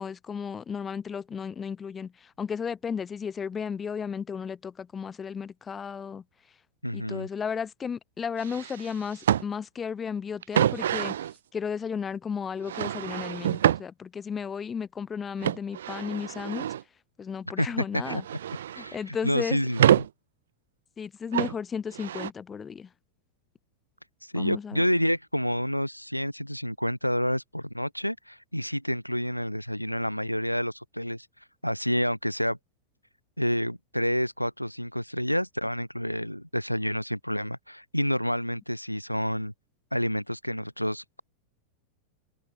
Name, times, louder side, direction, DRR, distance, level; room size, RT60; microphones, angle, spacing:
voice 1, 0.0-6.2 6.9-11.2 11.5-16.7 17.2-18.2 18.8-19.6 21.0-22.9 24.4-24.9, left 6 dB, 20° left, 0.6 m, -34 dB
voice 2, 6.8-7.3 17.6-18.2 18.8-20.1 24.2-31.3 31.6-32.6 33.4-39.5 39.9-41.2, equal, 90° left, 0.8 m, -29 dB
sound 1, 8.4-9.4 10.4-11.3 12.6-13.8 15.4-16.8 17.7-19.0 19.3-20.1 21.3-21.6 21.9-22.3, right 10 dB, 60° right, 0.7 m, -26 dB
open air
figure-of-eight pair, 90°, 0 cm